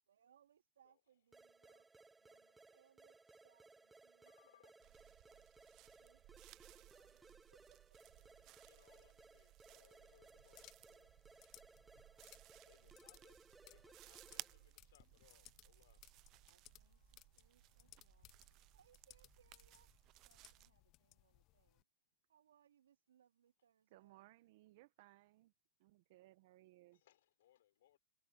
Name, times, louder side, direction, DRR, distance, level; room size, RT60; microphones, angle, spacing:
voice 1, 0.1-1.9 2.2-5.5 5.9-7.8 11.7-13.0 16.4-21.9 22.3-24.2, right 9 dB, 90° right, 3.6 m, -75 dB
sound 1, 1.3-14.7, right 3 dB, 10° right, 1.2 m, -65 dB
voice 2, 4.1-4.7 8.0-11.1 12.6-16.3 16.7-17.3 18.1-18.2 26.9-28.0, left 13 dB, 75° left, 4.4 m, -72 dB
sound 2, 4.8-20.7, right 18 dB, 40° right, 0.6 m, -61 dB
sound 3, 10.1-21.8, left 19 dB, 40° left, 0.8 m, -66 dB
voice 3, 23.9-25.5 25.8-27.0, right 18 dB, 60° right, 1.1 m, -64 dB
hypercardioid pair, 130°, 0 cm